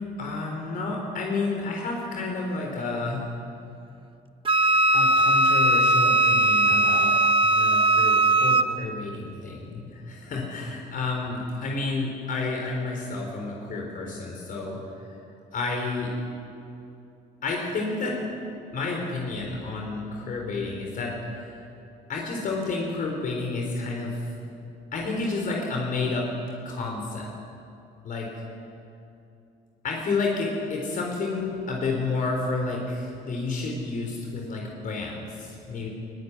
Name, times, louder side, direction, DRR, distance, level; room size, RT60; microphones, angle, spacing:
voice 1, 0.2-3.3 4.9-14.8 15.5-16.1 17.4-18.2 18.7-21.6 22.1-24.2 24.9-26.3 26.6-27.3 28.0-28.3 29.8-35.9, left 3 dB, 55° left, 0 dB, 4.6 m, -30 dB
Wind instrument woodwind instrument, 4.4-8.7, right 2 dB, 30° right, 1.2 m, -19 dB
22.5 x 18.5 x 10.0 m, 2.7 s
cardioid pair, 110°, 17 cm